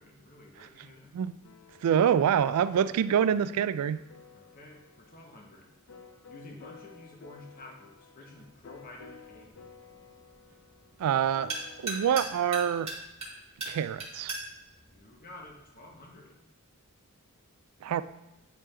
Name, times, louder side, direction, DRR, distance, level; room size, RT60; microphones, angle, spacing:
voice 1, 0.0-1.3 4.3-5.7 6.3-9.7 14.8-16.5, left 2 dB, 40° left, 0 dB, 1.0 m, -51 dB
sound 1, 1.4-12.0, left 5 dB, 60° left, 0.5 m, -53 dB
voice 2, 1.8-4.0 11.0-11.5 11.8-12.9 13.7-14.3 17.8-18.0, right 8 dB, 80° right, 14 dB, 0.3 m, -26 dB
sound 2, 8.5-16.0, right 2 dB, 25° right, 1.4 m, -41 dB
8.7 x 3.4 x 3.3 m, 0.95 s
head